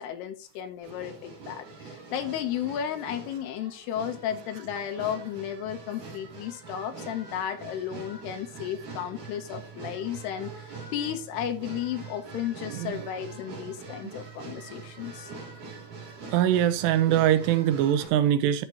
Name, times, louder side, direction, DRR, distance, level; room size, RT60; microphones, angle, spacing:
voice 1, 0.0-15.3, left 10 dB, 75° left, 2.7 m, -34 dB
sound 1, 0.8-18.1, right 4 dB, 45° right, 4.1 m, -44 dB
voice 2, 16.3-18.7, right 11 dB, 80° right, 2.6 m, -23 dB
11.0 x 6.4 x 2.9 m
omnidirectional pair, 5.1 m